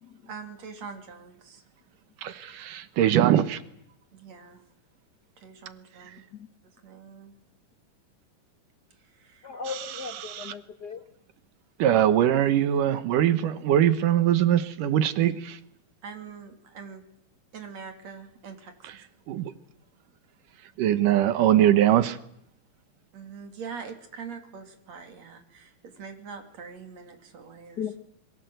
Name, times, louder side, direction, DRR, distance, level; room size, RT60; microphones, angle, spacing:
voice 1, 0.3-1.6 2.4-2.6 4.1-4.6 5.4-6.2 6.8-7.3 9.0-9.6 16.0-17.0 17.5-18.9 23.1-27.8, right 6 dB, 55° right, 3.9 m, -43 dB
voice 2, 2.2-3.6 9.7-9.8 10.2-10.5 11.8-15.6 19.3-19.5 20.8-22.2, right 11 dB, 80° right, 2.7 m, -22 dB
voice 3, 9.4-11.0 27.8-28.0, left 6 dB, 55° left, 1.1 m, -36 dB
27.0 x 23.0 x 8.0 m
omnidirectional pair, 3.7 m